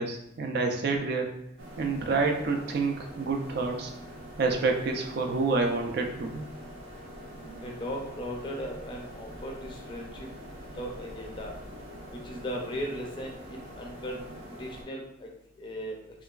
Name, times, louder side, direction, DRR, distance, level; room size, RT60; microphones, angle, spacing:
voice 1, 0.0-1.3 1.8-3.9 4.4-6.4, right 3 dB, 55° right, 3 dB, 0.4 m, -28 dB
sound 1, 1.6-14.8, equal, 80° right, 0.7 m, -44 dB
voice 2, 7.6-10.3 10.7-11.5 12.1-15.3 15.6-16.0, equal, 25° left, 0 dB, 0.4 m, -37 dB
2.9 x 2.3 x 2.3 m, 0.82 s
head